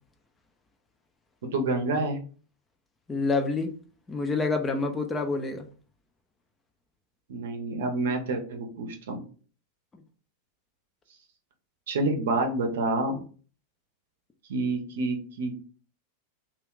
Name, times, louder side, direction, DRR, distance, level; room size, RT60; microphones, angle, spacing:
voice 1, 1.5-2.2 7.3-9.2 11.9-13.2 14.5-15.5, right 2 dB, 60° right, 4 dB, 0.7 m, -28 dB
voice 2, 3.1-3.7 4.1-5.7, left 3 dB, 15° left, 5 dB, 0.5 m, -27 dB
2.4 x 2.3 x 3.6 m, 0.40 s
figure-of-eight pair, 90°, 0 cm